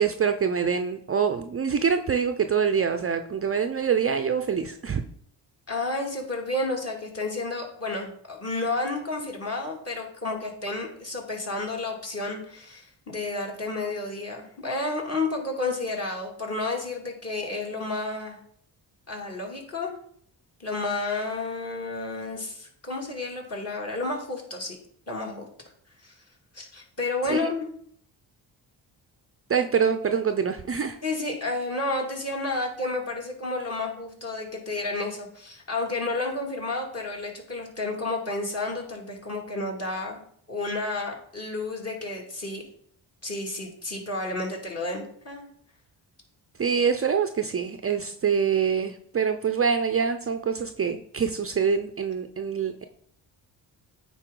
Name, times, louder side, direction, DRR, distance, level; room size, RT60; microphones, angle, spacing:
voice 1, 0.0-5.0 27.3-27.5 29.5-31.0 46.6-52.8, right 6 dB, 30° right, 7 dB, 0.5 m, -25 dB
voice 2, 5.7-18.4 19.1-19.9 20.6-24.8 25.1-25.5 26.0-26.1 26.5-27.7 31.0-40.2 40.5-42.6 43.2-45.5, left 2 dB, 35° left, 0 dB, 2.3 m, -31 dB
9.0 x 4.1 x 3.8 m, 0.63 s
cardioid pair, 65°, 44 cm